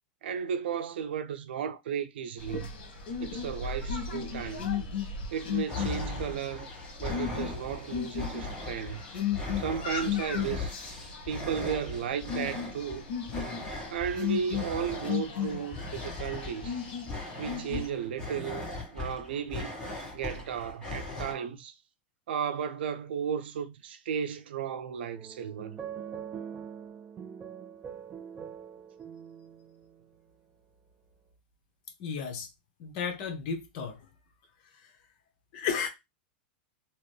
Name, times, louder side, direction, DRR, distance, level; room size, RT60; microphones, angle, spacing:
voice 1, 0.2-2.7 3.2-4.7 5.3-6.7 7.0-9.0 9.6-10.8 11.3-13.1 13.9-16.8 17.4-19.8 20.1-21.8 22.3-25.8, right 7 dB, 85° right, 0.5 m, -34 dB
sound 1, 2.4-17.9, left 7 dB, 75° left, 1.1 m, -36 dB
sound 2, 5.7-21.3, left 2 dB, 15° left, 1.6 m, -39 dB
sound 3, 25.1-30.0, right 8 dB, 20° right, 0.4 m, -43 dB
voice 2, 32.0-32.5 32.8-34.0 34.8-34.9 35.5-35.9, left 6 dB, 50° left, 1.0 m, -33 dB
2.9 x 2.6 x 3.2 m
supercardioid pair, 145°, 6 cm